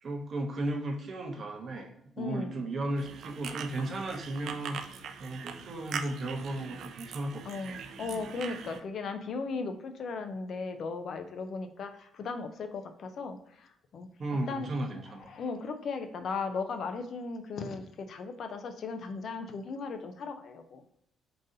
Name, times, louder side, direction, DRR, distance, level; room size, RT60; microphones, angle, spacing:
voice 1, 0.0-1.9 2.1-7.8 14.2-15.3, right 2 dB, 35° right, 2 dB, 0.7 m, -35 dB
voice 2, 2.2-2.6 7.4-14.1 14.5-14.7 15.1-20.8, left 4 dB, 50° left, 7 dB, 0.4 m, -37 dB
sound 1, 3.0-8.8, right 6 dB, 60° right, 0.4 m, -42 dB
3.8 x 2.6 x 3.7 m, 0.78 s
cardioid pair, 150°, 0 cm